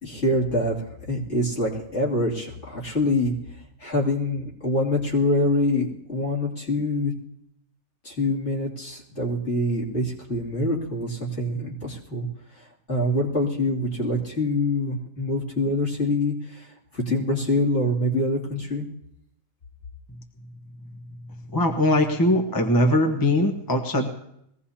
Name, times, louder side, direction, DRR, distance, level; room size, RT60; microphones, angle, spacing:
voice 1, 0.0-0.8 1.1-3.3 3.8-7.1 8.0-12.3 12.5-18.9, left 1 dB, 55° left, -4 dB, 3.1 m, -25 dB
voice 2, 21.5-24.1, left 1 dB, 15° left, 3 dB, 1.1 m, -21 dB
21.5 x 17.0 x 2.9 m, 0.76 s
omnidirectional pair, 1.4 m